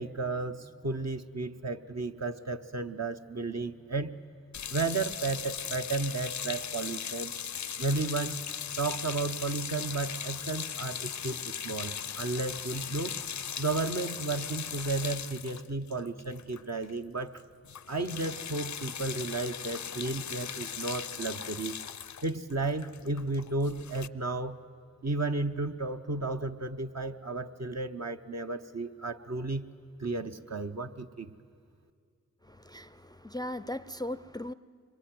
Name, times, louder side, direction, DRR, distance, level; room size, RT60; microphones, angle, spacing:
voice 1, 0.0-4.1 4.7-7.3 7.8-8.4 8.8-13.2 13.6-17.4 17.9-21.7 22.2-24.6 25.0-29.6 30.0-31.3, right 3 dB, 50° right, 6 dB, 1.1 m, -33 dB
sound 1, 4.5-16.9 17.2-17.4 17.6-24.1, left 8 dB, 60° left, 0.6 m, -38 dB
voice 2, 32.4-34.5, left 1 dB, 10° left, 15 dB, 0.5 m, -38 dB
25.0 x 21.5 x 9.3 m, 2.3 s
cardioid pair, 55°, 33 cm